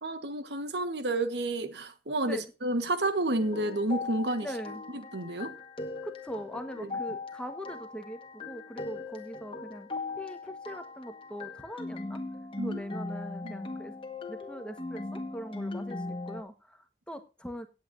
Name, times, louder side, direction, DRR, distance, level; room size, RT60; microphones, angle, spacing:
voice 1, 0.0-4.5 4.9-5.5 6.8-6.9 12.6-12.8 13.4-13.5, right 2 dB, 75° right, 1.4 m, -30 dB
sound 1, 3.4-16.4, left 3 dB, 30° left, 1.4 m, -39 dB
voice 2, 4.4-4.8 6.0-12.2 12.6-13.9 14.3-17.7, equal, 5° left, 1.2 m, -41 dB
17.5 x 8.2 x 2.6 m
head